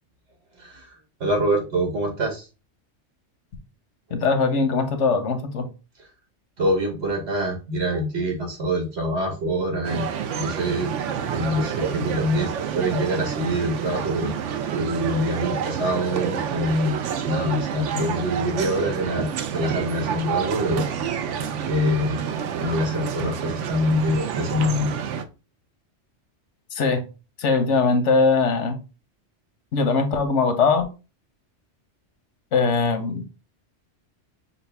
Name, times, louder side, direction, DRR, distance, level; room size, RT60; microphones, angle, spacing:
voice 1, 0.6-2.5 6.0-6.1 6.6-10.1 10.4-10.9 11.3-14.3 14.7-17.0 17.2-21.3 21.7-22.2 22.6-24.9, equal, 70° right, 1.4 m, -25 dB
voice 2, 4.1-5.7 26.7-27.0 27.4-28.8 29.7-30.9 32.5-33.2, left 4 dB, 80° left, 1.2 m, -21 dB
sound 1, 9.8-25.2, right 8 dB, 85° right, 1.0 m, -28 dB
6.5 x 2.4 x 3.4 m
omnidirectional pair, 1.2 m